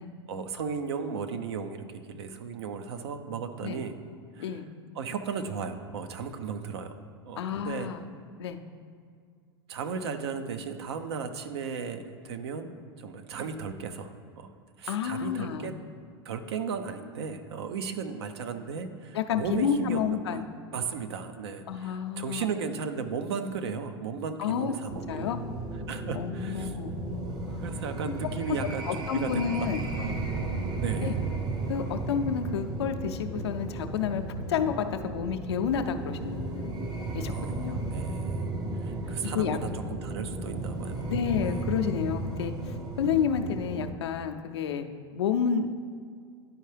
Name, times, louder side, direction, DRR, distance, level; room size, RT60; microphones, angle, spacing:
voice 1, 0.3-4.0 4.4-4.6 4.9-6.9 7.3-7.9 9.7-14.5 14.8-15.7 16.2-20.4 20.7-25.2 25.9-26.7 27.6-29.5 30.0-31.2 37.3-38.4 38.8-41.1 41.5-41.6, right 6 dB, 75° right, 8 dB, 0.6 m, -35 dB
voice 2, 7.4-8.0 8.4-8.6 14.9-15.7 19.1-20.5 21.7-22.5 24.4-24.7 25.1-25.4 26.1-26.9 28.9-29.8 31.0-31.2 31.7-34.2 34.5-36.9 37.1-37.8 39.1-39.6 41.1-44.9 45.1-45.7, left 7 dB, 80° left, 6 dB, 0.5 m, -30 dB
sound 1, 24.9-43.9, right 2 dB, 30° right, 0.7 m, -34 dB
10.5 x 4.5 x 3.3 m, 2.2 s
hypercardioid pair, 100°, 14 cm